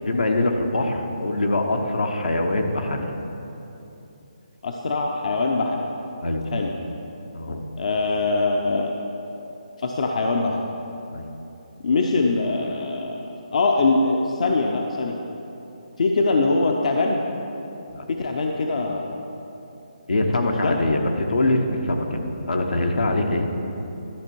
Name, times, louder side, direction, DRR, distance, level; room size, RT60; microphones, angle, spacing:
voice 1, 0.0-3.1 6.2-6.5 7.3-7.6 11.1-11.3 17.9-18.0 20.1-23.5, left 2 dB, 80° left, 3 dB, 1.0 m, -23 dB
voice 2, 4.6-5.9 6.5-6.7 7.8-8.9 9.8-10.7 11.8-15.2 16.0-17.2 18.1-19.2 20.5-20.8, left 3 dB, 60° left, 1 dB, 0.6 m, -23 dB
12.0 x 6.1 x 4.5 m, 3.0 s
figure-of-eight pair, 155°, 4 cm